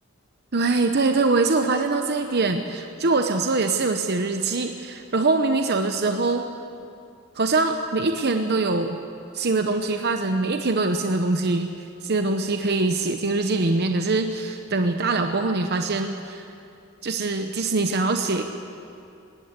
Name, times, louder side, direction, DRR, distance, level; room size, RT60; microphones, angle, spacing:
voice 1, 0.5-6.5 7.3-9.0 9.3-11.7 12.0-16.5 17.0-18.4, right 3 dB, 55° right, 6 dB, 0.9 m, -23 dB
20.0 x 17.0 x 8.2 m, 2.6 s
head